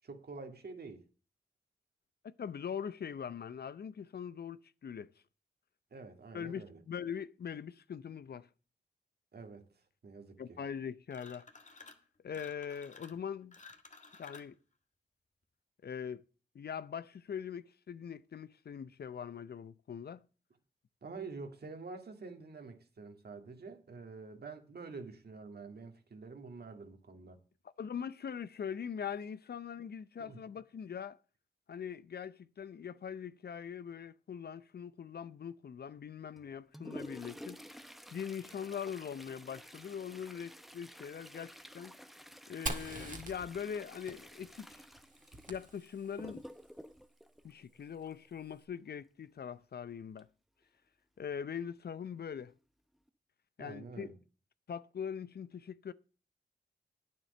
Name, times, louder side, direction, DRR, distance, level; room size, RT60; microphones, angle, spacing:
voice 1, 0.0-1.0 5.9-6.8 9.3-9.7 10.0-10.6 21.0-27.4 30.2-30.4 53.6-54.2, right 4 dB, 60° right, 2.1 m, -47 dB
voice 2, 2.2-5.1 6.3-8.5 10.4-11.5 12.2-13.6 14.2-14.6 15.8-16.2 16.5-20.2 27.8-31.2 31.7-37.6 38.1-42.0 42.5-44.9 45.5-46.5 47.4-50.3 51.2-52.5 53.6-54.1 54.7-55.9, left 7 dB, 60° left, 0.6 m, -42 dB
sound 1, 11.1-12.0 12.3-14.5, left 4 dB, 40° left, 1.8 m, -54 dB
Toilet flush, 36.3-48.3 50.2-50.3 50.6-50.7 51.5-51.6 52.3-52.5 52.9-53.1, equal, ahead, 0.9 m, -51 dB
Fire, 42.7-46.3, right 2 dB, 45° right, 2.0 m, -44 dB
9.3 x 7.6 x 6.8 m
cardioid pair, 50°, 18 cm